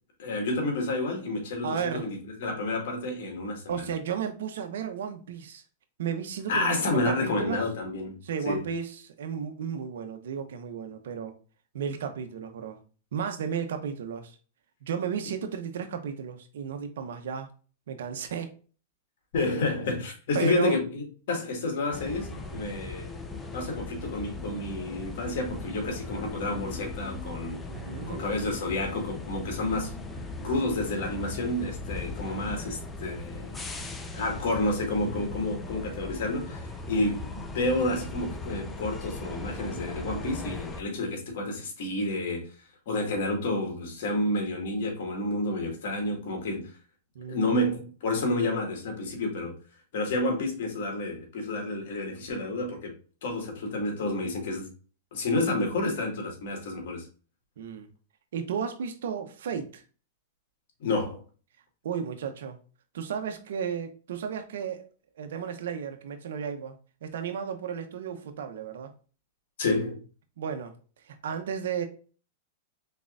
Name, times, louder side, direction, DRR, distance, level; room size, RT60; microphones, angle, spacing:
voice 1, 0.2-3.9 6.5-8.2 8.4-8.6 19.3-23.1 23.5-27.6 28.1-29.9 30.4-33.6 34.1-42.5 42.9-46.7 47.3-49.5 49.9-52.9 53.2-54.7 55.1-57.0 60.8-61.2 69.6-70.0, left 2 dB, 65° left, 2.0 m, -30 dB
voice 2, 1.6-2.0 3.7-5.6 6.0-7.6 8.2-11.3 11.7-12.8 13.1-14.4 14.8-17.5 17.9-18.5 20.3-20.8 27.7-28.3 47.1-47.6 57.6-57.9 58.3-59.8 61.8-62.6 62.9-64.9 65.2-68.9 70.4-70.7 71.1-71.9, right 7 dB, 75° right, 0.9 m, -33 dB
sound 1, 21.9-40.8, left 3 dB, 15° left, 0.6 m, -38 dB
4.3 x 3.9 x 2.5 m
hypercardioid pair, 130°, 0 cm